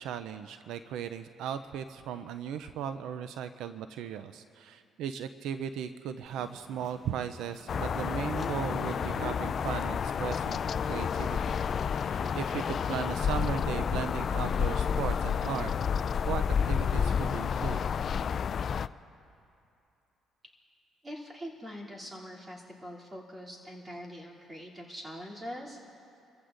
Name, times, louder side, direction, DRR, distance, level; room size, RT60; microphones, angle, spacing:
voice 1, 0.0-10.6 10.9-11.6 11.9-15.7 16.3-17.9, right 8 dB, 80° right, 10 dB, 0.4 m, -37 dB
sound 1, 6.3-15.1, right 3 dB, 40° right, 1.1 m, -53 dB
sound 2, 7.7-18.9, left 7 dB, 50° left, 0.3 m, -30 dB
voice 2, 21.0-25.8, equal, 20° right, -4 dB, 2.8 m, -43 dB
28.0 x 15.0 x 2.5 m, 2.6 s
cardioid pair, 90°, 0 cm